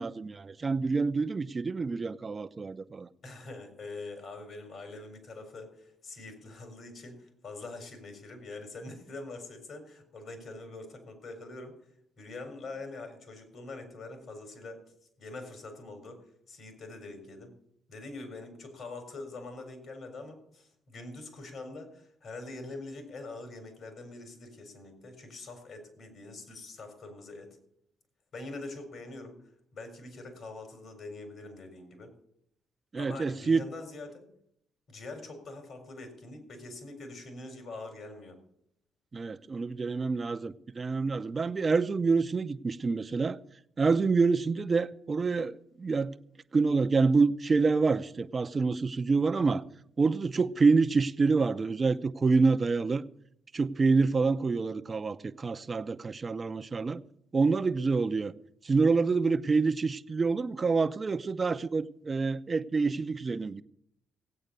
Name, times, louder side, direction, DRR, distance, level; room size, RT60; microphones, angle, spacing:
voice 1, 0.0-3.1 32.9-33.6 39.1-43.4 43.8-46.1 46.5-49.6 50.0-53.0 53.5-57.0 57.3-58.3 58.6-63.6, right 4 dB, 30° right, 0.7 m, -27 dB
voice 2, 3.2-11.8 12.2-14.8 15.2-16.2 16.5-17.5 17.9-27.6 28.3-29.4 29.7-32.1 33.0-34.2 34.9-38.4, left 2 dB, 60° left, 4.5 m, -44 dB
17.0 x 8.7 x 6.8 m
cardioid pair, 90°, 0 cm